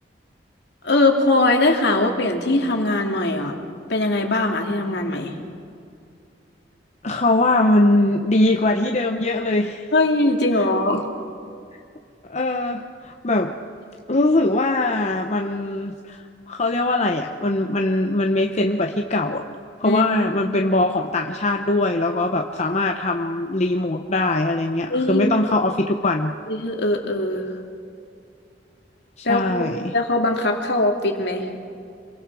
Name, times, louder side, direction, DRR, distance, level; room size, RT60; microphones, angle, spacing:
voice 1, 0.8-3.5 3.9-5.3 9.9-11.1 19.8-20.1 22.1-22.2 24.9-25.3 26.5-27.4 29.2-31.6, left 2 dB, 65° left, 2 dB, 2.6 m, -21 dB
voice 2, 7.0-9.9 12.3-13.5 14.1-19.4 19.8-26.3 29.2-29.9, left 2 dB, 40° left, 3 dB, 0.8 m, -21 dB
27.0 x 23.0 x 4.8 m, 2.4 s
head